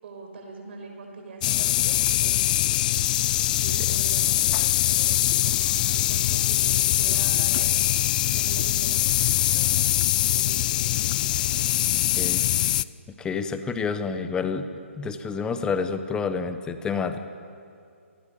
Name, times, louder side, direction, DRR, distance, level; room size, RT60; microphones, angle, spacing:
voice 1, 0.0-2.4 3.5-7.7 8.3-9.8 10.3-10.7, right 3 dB, 50° right, 2 dB, 6.0 m, -42 dB
sound 1, 1.4-12.8, left 14 dB, 35° left, 0.5 m, -23 dB
voice 2, 13.2-14.7 14.9-17.2, left 5 dB, 10° left, 9 dB, 1.2 m, -28 dB
29.5 x 19.5 x 7.0 m, 2.4 s
figure-of-eight pair, 145°, 8 cm